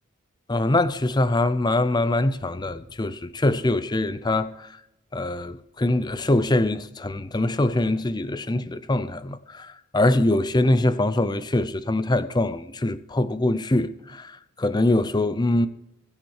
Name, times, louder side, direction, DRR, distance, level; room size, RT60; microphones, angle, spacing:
voice 1, 0.5-4.7 5.1-14.3 14.6-15.7, left 2 dB, 20° left, 0.5 m, -23 dB
22.0 x 7.4 x 4.7 m
head